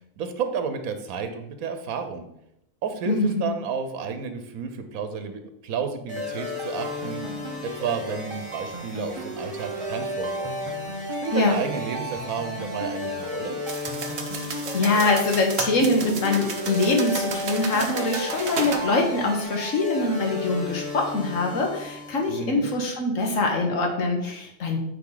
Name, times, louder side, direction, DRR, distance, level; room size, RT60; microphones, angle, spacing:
voice 1, 0.2-2.3 2.8-10.5 11.2-13.6 22.3-22.7, right 6 dB, 85° right, 8 dB, 1.2 m, -31 dB
voice 2, 3.1-3.5 11.3-11.6 14.4-24.8, left 2 dB, 65° left, 2 dB, 1.6 m, -24 dB
sound 1, 6.1-22.5, left 1 dB, 5° left, 1.7 m, -34 dB
sound 2, 6.1-19.4, equal, 30° right, 0.6 m, -38 dB
sound 3, 13.7-18.8, right 4 dB, 50° right, 1.0 m, -33 dB
9.0 x 3.8 x 3.9 m, 0.80 s
omnidirectional pair, 1.5 m